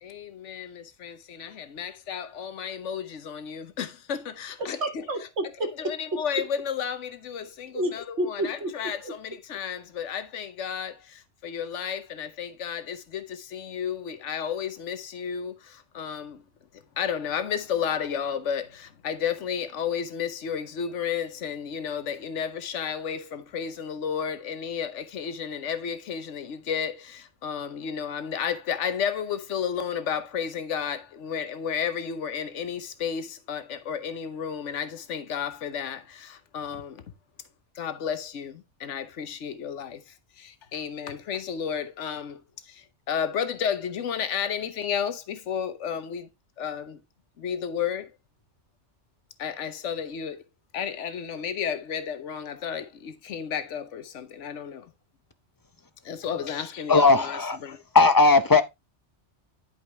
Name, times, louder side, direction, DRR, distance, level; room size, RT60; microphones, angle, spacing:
voice 1, 0.0-4.8 5.8-16.4 17.0-37.0 37.7-42.4 42.7-46.3 46.6-47.0 47.4-48.1 49.4-50.4 50.7-54.9 56.0-57.8, left 7 dB, 80° left, 1.2 m, -32 dB
voice 2, 4.6-6.2 7.7-9.1, right 1 dB, 65° right, 1.8 m, -31 dB
voice 3, 56.9-57.6 57.9-58.6, left 3 dB, 25° left, 0.5 m, -17 dB
11.0 x 5.2 x 3.3 m
omnidirectional pair, 1.2 m